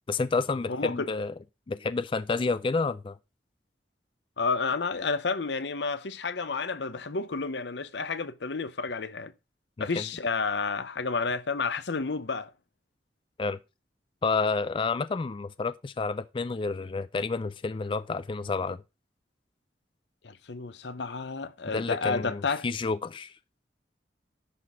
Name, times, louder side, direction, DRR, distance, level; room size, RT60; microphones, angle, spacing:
voice 1, 0.1-1.3 1.7-3.2 9.8-10.0 13.4-13.6 14.2-18.8 21.7-23.3, left 4 dB, 30° left, 0.4 m, -30 dB
voice 2, 0.7-1.1 4.4-9.3 9.8-12.5 20.2-22.7, left 4 dB, 85° left, 0.8 m, -31 dB
11.0 x 4.2 x 5.5 m
head